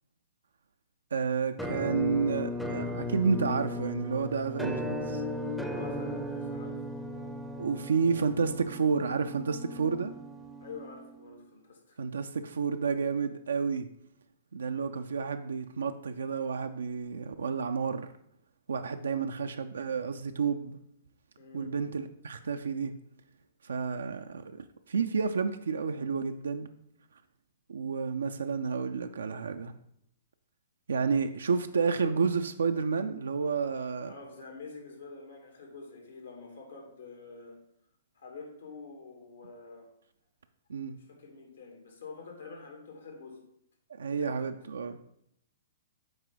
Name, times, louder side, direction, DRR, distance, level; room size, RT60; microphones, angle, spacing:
voice 1, 1.1-5.2 7.6-10.1 12.0-13.9 14.5-18.1 18.7-20.8 21.5-22.9 23.6-26.7 27.7-29.7 30.9-34.1 40.7-40.9 43.9-45.0, right 5 dB, 80° right, 7 dB, 0.4 m, -30 dB
Musical instrument, 1.6-11.4, left 1 dB, ahead, 0.6 m, -36 dB
voice 2, 5.7-6.8 10.6-12.0 21.4-21.7 34.0-37.6 38.1-39.9 40.9-43.4 44.1-44.5, left 4 dB, 80° left, 1 dB, 2.2 m, -47 dB
7.8 x 4.7 x 3.9 m, 0.74 s
hypercardioid pair, 125°, 0 cm